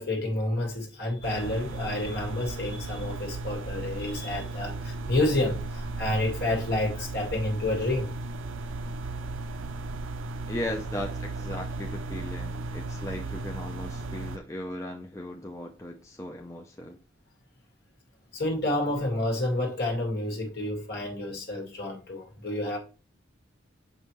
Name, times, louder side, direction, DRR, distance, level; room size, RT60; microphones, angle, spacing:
voice 1, 0.0-8.1 18.3-22.8, left 1 dB, 55° left, 2.0 m, -29 dB
sound 1, 1.2-14.4, right 2 dB, 85° right, 0.5 m, -35 dB
voice 2, 10.5-17.0, left 1 dB, 15° left, 0.5 m, -37 dB
6.6 x 5.2 x 3.1 m
head